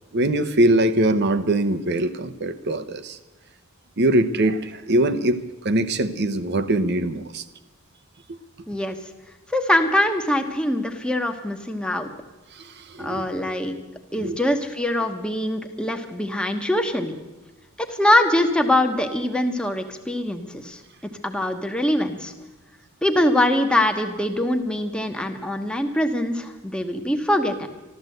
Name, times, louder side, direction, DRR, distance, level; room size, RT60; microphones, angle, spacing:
voice 1, 0.1-3.2 4.0-7.4 12.5-13.3 14.1-14.5, right 1 dB, 50° right, 11 dB, 0.9 m, -22 dB
voice 2, 9.5-12.1 13.0-13.8 14.1-17.1 17.8-20.8 21.2-22.3 23.0-27.7, left 1 dB, 5° left, 5 dB, 1.1 m, -23 dB
13.5 x 13.0 x 7.8 m, 1.1 s
head